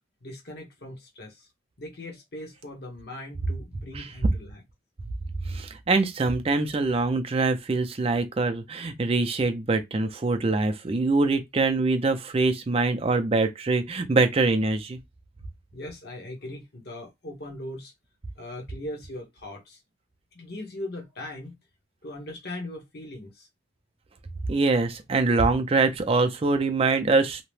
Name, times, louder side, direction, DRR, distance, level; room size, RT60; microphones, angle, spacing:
voice 1, 0.2-1.5 1.8-4.6 15.7-17.9 18.4-19.8 20.3-21.5 22.0-23.5, left 1 dB, 50° left, 1.0 m, -39 dB
voice 2, 5.5-15.0 24.5-27.4, right 3 dB, 30° right, 0.4 m, -24 dB
2.8 x 2.1 x 3.1 m
head